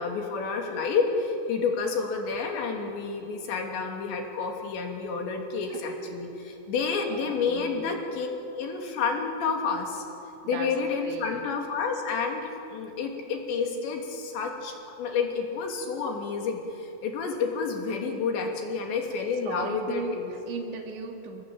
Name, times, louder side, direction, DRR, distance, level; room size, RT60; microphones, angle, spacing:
voice 1, 0.0-8.3 8.6-10.0 10.5-20.3, left 5 dB, 80° left, 2 dB, 5.1 m, -30 dB
voice 2, 7.1-7.9 10.4-10.7 11.0-11.4 19.5-20.2 20.5-21.4, right 4 dB, 80° right, 3 dB, 4.8 m, -37 dB
27.0 x 20.0 x 8.9 m, 2.7 s
omnidirectional pair, 5.0 m